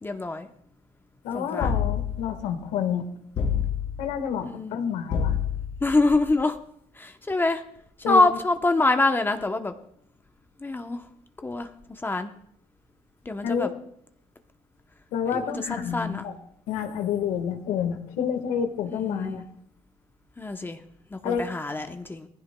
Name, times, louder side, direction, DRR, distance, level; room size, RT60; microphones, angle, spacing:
voice 1, 0.0-0.5 1.3-1.7 4.4-4.8 5.8-6.6 6.9-7.6 8.0-9.7 10.6-11.1 11.4-12.3 13.2-13.7 15.3-16.3 18.9-19.4 20.4-20.8 21.1-22.3, left 2 dB, 15° left, 7 dB, 0.8 m, -25 dB
voice 2, 1.2-3.1 4.0-5.3 8.0-8.3 13.4-13.7 15.1-16.3 16.7-19.4 21.2-21.4, left 8 dB, 85° left, 8 dB, 1.5 m, -28 dB
sound 1, 1.6-2.4 3.3-4.1 5.1-5.9, left 7 dB, 50° left, 3.1 m, -27 dB
19.0 x 15.5 x 2.2 m, 0.70 s
cardioid pair, 100°, 12 cm